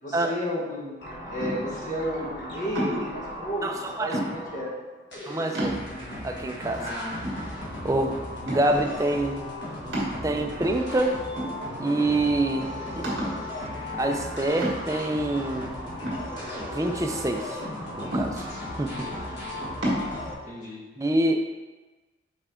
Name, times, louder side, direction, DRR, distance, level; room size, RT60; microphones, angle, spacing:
voice 1, 0.0-1.0 1.3-4.7 6.8-7.3 7.8-8.1 18.8-19.5 20.4-20.8, equal, 40° left, -5 dB, 1.6 m, -33 dB
sound 1, 1.0-4.7 5.1-20.3, left 1 dB, 60° left, 1.4 m, -36 dB
sound 2, 1.4-1.8 2.7-3.2 4.1-4.6 5.1-5.2 5.5-6.2 6.7-6.8 7.2-8.0 8.5-8.9 9.9-10.7 11.4-12.0 12.3-12.4 13.0-13.5 14.6-15.1 16.0-16.9 18.1-18.7 19.8-20.1, right 1 dB, 65° right, 2.0 m, -31 dB
voice 2, 5.3-5.8 6.2-6.8 7.8-8.1 8.5-9.4 10.2-11.2 11.8-12.7 13.0-13.2 14.0-15.7 16.7-17.4 17.9-18.4 18.8-18.9 21.0-21.4, right 2 dB, 15° right, 3 dB, 0.4 m, -25 dB
5.6 x 4.6 x 3.7 m, 1.2 s
head